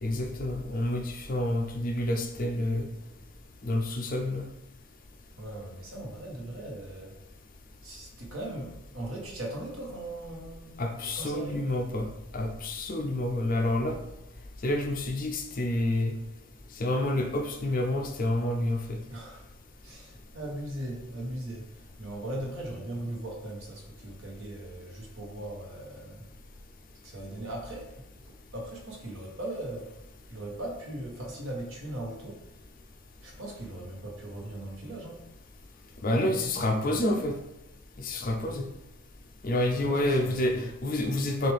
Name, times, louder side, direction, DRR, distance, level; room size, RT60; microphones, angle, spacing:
voice 1, 0.0-2.9 3.6-4.4 10.8-12.1 12.3-14.0 14.6-16.1 16.8-19.0 36.0-37.3 38.0-38.7 39.4-41.5, left 1 dB, 40° left, 3 dB, 0.5 m, -28 dB
voice 2, 5.3-7.2 7.8-10.8 11.1-11.7 19.1-19.5 19.8-26.3 27.0-30.0 30.3-32.4 33.2-35.3 39.7-40.7, right 1 dB, 65° right, -1 dB, 1.2 m, -39 dB
6.0 x 2.5 x 3.4 m, 0.88 s
head